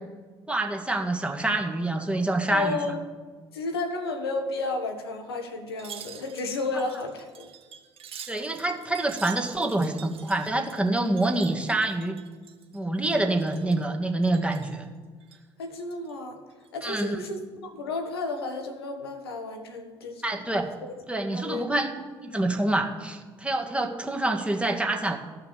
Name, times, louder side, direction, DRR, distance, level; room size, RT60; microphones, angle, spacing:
voice 1, 0.5-2.8 8.3-12.2 12.7-14.9 16.8-17.2 20.2-20.7 21.1-21.9 22.2-25.2, right 2 dB, 10° right, 2 dB, 1.7 m, -26 dB
voice 2, 2.5-3.0 3.5-7.5 15.6-16.4 16.7-20.3 20.8-20.9 21.3-21.7, left 3 dB, 80° left, 5 dB, 1.2 m, -32 dB
Wind chime, 5.7-12.8 13.0-13.9 14.2-14.8 15.2-16.1 16.5-16.7, right 8 dB, 45° right, 1.6 m, -46 dB
14.5 x 5.7 x 7.1 m, 1.5 s
figure-of-eight pair, 55°, 13 cm